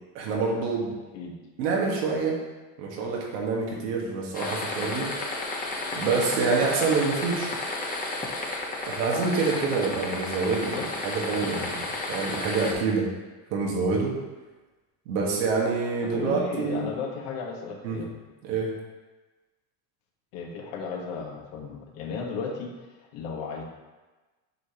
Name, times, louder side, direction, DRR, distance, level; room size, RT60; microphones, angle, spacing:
voice 1, 0.2-0.9 1.6-2.4 2.8-5.1 5.9-7.5 8.9-10.8 11.0-11.8 12.1-13.1 13.5-14.1 15.1-16.9 17.8-18.0 18.4-18.7, right 4 dB, 90° right, -2 dB, 1.7 m, -26 dB
sound 1, 4.3-12.7, left 2 dB, 20° left, 1.1 m, -32 dB
voice 2, 16.0-18.1 20.3-23.6, left 5 dB, 70° left, 1 dB, 1.5 m, -35 dB
7.7 x 5.0 x 2.9 m, 1.2 s
supercardioid pair, 110°, 47 cm